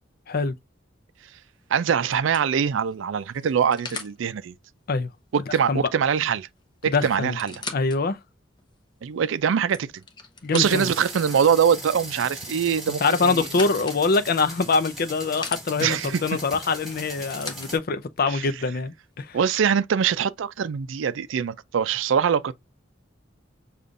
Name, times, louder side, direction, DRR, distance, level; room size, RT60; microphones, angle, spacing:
sound 1, 1.2-1.5 2.1-4.2 6.2-6.3 6.6-6.7 7.2-8.0 8.6-8.7 9.4-11.0 12.7-14.0 14.7-15.6 16.9-17.7 18.6-18.7, left 4 dB, 25° left, 0.8 m, -39 dB
voice 1, 1.7-4.5 5.3-6.5 6.8-7.6 9.0-10.0 10.5-13.5 15.8-16.2 18.3-18.4 19.3-22.5, right 7 dB, 90° right, 0.4 m, -23 dB
voice 2, 6.9-7.4 7.7-8.2 10.4-10.9 13.0-19.4, left 4 dB, 50° left, 0.5 m, -24 dB
sound 2, 10.6-17.8, right 1 dB, ahead, 2.5 m, -39 dB
6.7 x 2.5 x 2.4 m
head